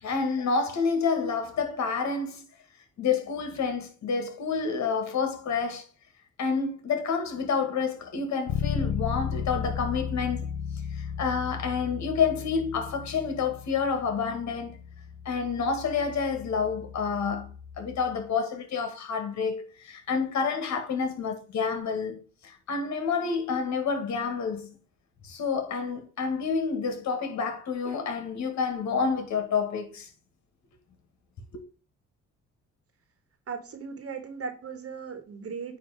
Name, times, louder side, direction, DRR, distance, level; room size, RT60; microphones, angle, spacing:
voice 1, 0.0-2.4 3.0-5.8 6.4-10.5 10.9-14.8 15.3-22.2 22.4-24.8 25.2-30.1 31.5-31.6, left 5 dB, 65° left, 1.9 m, -29 dB
Bass guitar, 8.5-18.3, left 7 dB, 90° left, 0.8 m, -35 dB
voice 2, 33.5-35.8, right 5 dB, 50° right, 1.5 m, -37 dB
9.3 x 3.2 x 4.9 m
cardioid pair, 90°, 30 cm